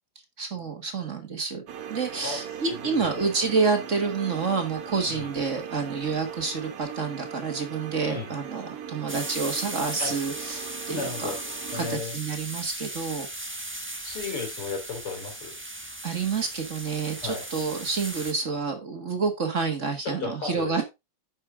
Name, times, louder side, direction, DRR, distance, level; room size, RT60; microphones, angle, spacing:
voice 1, 0.4-1.6 1.9-11.3 11.7-13.3 16.0-20.8, right 4 dB, 35° right, 6 dB, 1.6 m, -28 dB
sound 1, 1.7-12.0, right 9 dB, 80° right, 2.1 m, -40 dB
voice 2, 2.7-3.3 5.1-5.4 8.0-8.3 10.0-10.1 10.9-11.4 11.7-12.2 14.0-15.5 17.2-17.4 20.1-20.8, left 4 dB, 75° left, 2 dB, 3.8 m, -34 dB
sound 2, 9.1-18.3, right 1 dB, 15° right, 0.4 m, -37 dB
9.9 x 6.2 x 3.7 m, 0.23 s
omnidirectional pair, 2.4 m